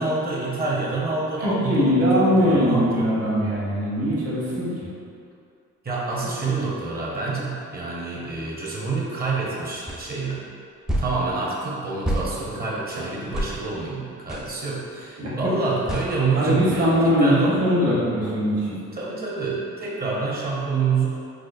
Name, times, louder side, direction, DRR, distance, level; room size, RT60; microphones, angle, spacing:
voice 1, 0.0-3.1 5.8-10.4 11.0-17.6 18.9-21.3, right 4 dB, 30° right, -5 dB, 0.8 m, -27 dB
voice 2, 1.4-4.7 15.2-15.6 16.3-18.7, equal, 50° right, -8 dB, 1.2 m, -21 dB
sound 1, 9.9-10.0 10.9-11.1 12.0-12.3 13.3-13.5 14.3-14.5 15.9-16.1, right 1 dB, ahead, 0.4 m, -26 dB
4.9 x 2.0 x 2.5 m, 2.4 s
cardioid pair, 90°, 30 cm